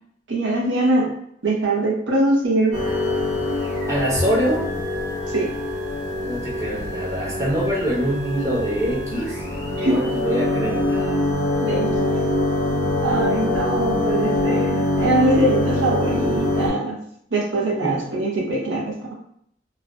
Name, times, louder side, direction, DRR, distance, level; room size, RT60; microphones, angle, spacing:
voice 1, 0.3-1.1 1.4-2.7 5.3-5.5 9.7-10.0 11.6-12.1 13.0-17.0 17.3-19.1, right 2 dB, 75° right, -4 dB, 0.8 m, -22 dB
sound 1, 2.7-16.7, left 1 dB, 50° right, 0.9 m, -24 dB
voice 2, 3.9-4.7 6.3-9.4 9.8-11.2 17.8-18.1, equal, 15° right, -6 dB, 0.6 m, -24 dB
2.5 x 2.2 x 2.2 m, 0.70 s
head